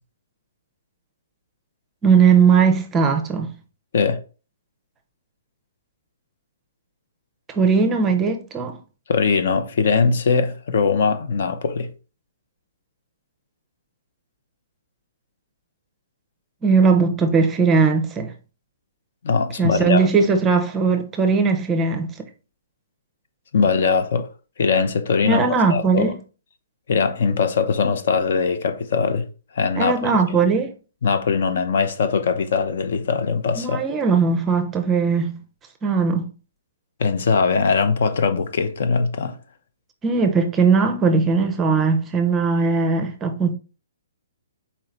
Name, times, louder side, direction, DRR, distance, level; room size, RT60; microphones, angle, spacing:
voice 1, 2.0-3.5 7.5-8.8 16.6-18.3 19.6-22.3 25.2-26.2 29.8-30.7 33.6-35.4 35.8-36.3 40.0-43.5, right 5 dB, 15° right, 0.5 m, -19 dB
voice 2, 9.1-11.9 19.2-20.1 23.5-24.3 24.6-25.4 25.7-26.1 26.9-29.3 29.5-30.2 31.0-33.8 37.0-39.4, left 5 dB, 60° left, 0.6 m, -21 dB
4.2 x 3.1 x 3.9 m
hypercardioid pair, 155°, 0 cm